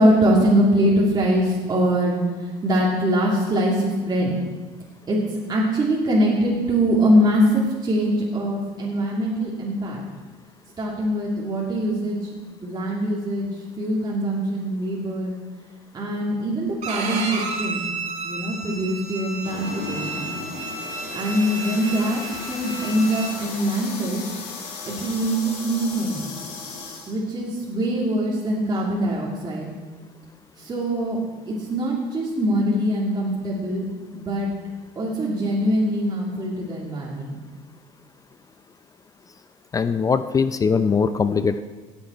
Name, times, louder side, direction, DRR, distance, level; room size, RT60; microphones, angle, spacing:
voice 1, 0.0-2.2 2.6-4.3 5.1-5.2 5.5-10.0 10.8-12.2 12.6-13.5 13.8-15.4 15.9-17.8 18.2-20.2 21.1-22.2 22.5-24.2 24.8-26.3 27.1-29.8 30.6-31.2 31.5-33.9 34.1-34.5 35.0-37.3, equal, 30° right, -5 dB, 2.6 m, -22 dB
Bowed string instrument, 16.8-23.3, right 3 dB, 55° right, 2.0 m, -32 dB
sound 1, 19.4-27.1, left 3 dB, 75° left, 3.1 m, -35 dB
voice 2, 39.7-41.6, left 5 dB, 25° left, 11 dB, 0.4 m, -21 dB
17.0 x 7.9 x 4.4 m, 1.4 s
cardioid pair, 105°, 14 cm